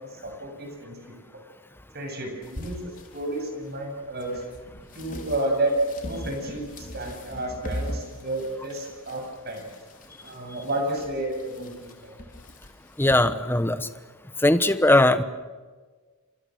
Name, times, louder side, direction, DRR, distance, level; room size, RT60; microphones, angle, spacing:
voice 1, 0.2-1.0 1.9-4.3 4.9-5.7 6.0-9.6 10.2-12.2, right 1 dB, 45° right, 3 dB, 7.6 m, -31 dB
sound 1, 2.4-13.2, equal, 40° left, 3.9 m, -41 dB
voice 2, 13.0-13.8 14.4-15.2, left 1 dB, 10° left, 11 dB, 1.1 m, -19 dB
29.5 x 27.0 x 6.4 m, 1.4 s
head